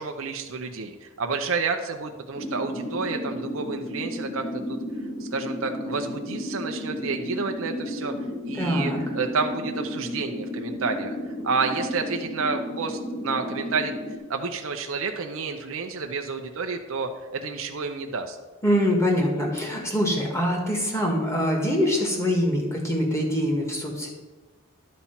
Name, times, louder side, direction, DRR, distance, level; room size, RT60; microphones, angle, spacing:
voice 1, 0.0-4.4 4.7-4.8 5.2-8.1 8.4-13.9 14.3-18.4, right 4 dB, 65° right, 4 dB, 0.6 m, -30 dB
sound 1, 2.3-14.2, equal, 40° left, 1.6 m, -33 dB
voice 2, 8.6-9.0 18.6-24.1, equal, 15° left, 0 dB, 1.6 m, -24 dB
11.0 x 4.3 x 5.8 m, 1.3 s
head